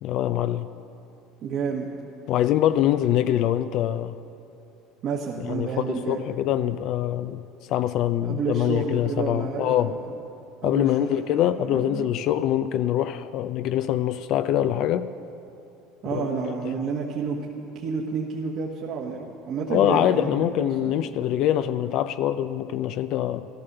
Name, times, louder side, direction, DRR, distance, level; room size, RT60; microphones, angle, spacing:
voice 1, 0.0-0.7 2.3-4.1 5.4-7.4 7.7-9.9 10.6-15.1 16.1-16.7 19.7-23.5, left 12 dB, 60° left, 11 dB, 0.4 m, -24 dB
voice 2, 1.4-1.9 5.0-6.3 8.3-10.0 10.6-12.1 16.0-21.4, right 5 dB, 50° right, -2 dB, 1.4 m, -30 dB
14.5 x 12.5 x 6.7 m, 2.8 s
supercardioid pair, 115°, 0 cm